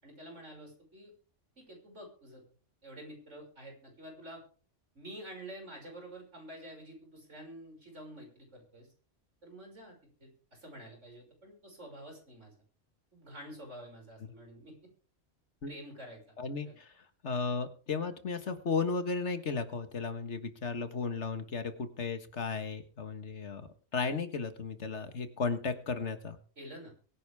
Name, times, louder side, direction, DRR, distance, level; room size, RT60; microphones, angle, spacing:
voice 1, 0.0-1.1 1.6-2.4 2.8-4.4 4.9-8.9 9.4-9.9 10.2-12.5 13.1-14.7 15.7-16.2 16.6-16.7 26.6-26.9, right 1 dB, 80° right, 1 dB, 6.3 m, -48 dB
voice 2, 16.4-16.9 17.2-23.6 23.9-26.4, left 4 dB, 70° left, 9 dB, 1.9 m, -34 dB
22.5 x 10.5 x 3.5 m, 0.40 s
omnidirectional pair, 1.2 m